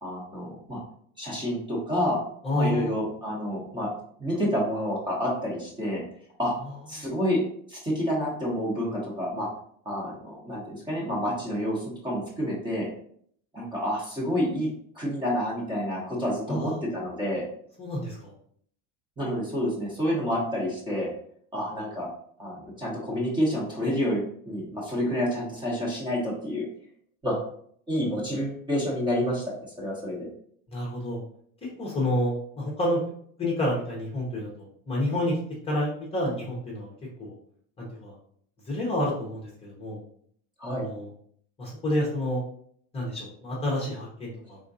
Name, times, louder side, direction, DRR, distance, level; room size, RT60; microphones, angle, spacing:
voice 1, 0.0-0.8 1.2-2.2 2.5-3.9 4.2-6.0 6.4-6.5 6.9-7.4 7.7-9.5 9.8-12.9 13.5-14.7 14.9-17.4 19.2-21.1 21.5-22.1 22.4-26.7 27.2-27.4 27.9-29.4 29.8-30.3 40.6-40.8, equal, 10° right, -4 dB, 0.9 m, -28 dB
voice 2, 2.4-3.0 7.0-7.1 16.5-16.8 17.8-18.3 30.7-31.2 31.8-33.0 33.4-35.4 35.6-36.9 37.2-37.4 37.8-38.1 38.6-40.0 40.8-41.1 41.6-42.4 42.9-44.6, left 1 dB, 15° left, -4 dB, 0.8 m, -29 dB
4.3 x 3.6 x 2.6 m, 0.63 s
cardioid pair, 165°, 38 cm